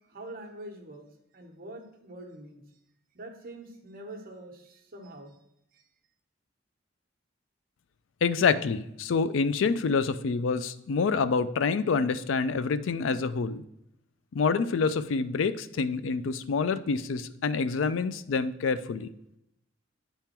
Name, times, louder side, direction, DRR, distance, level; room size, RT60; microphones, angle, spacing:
voice 1, 0.1-1.1 1.3-2.6 3.1-5.4 5.7-5.8, right 1 dB, 50° right, 3 dB, 1.1 m, -44 dB
voice 2, 8.2-13.6 14.3-19.1, left 5 dB, 75° left, 14 dB, 0.4 m, -27 dB
9.0 x 3.7 x 4.4 m, 0.81 s
head